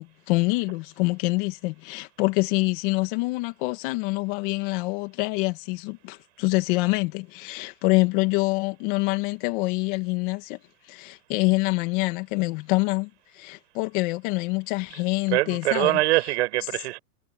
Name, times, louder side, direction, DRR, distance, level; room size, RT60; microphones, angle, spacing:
voice 1, 0.0-10.6 10.9-16.0, left 25 dB, 35° left, 2.3 m, -26 dB
voice 2, 15.3-17.0, right 18 dB, 50° right, 7.8 m, -23 dB
supercardioid pair, 165°, 44 cm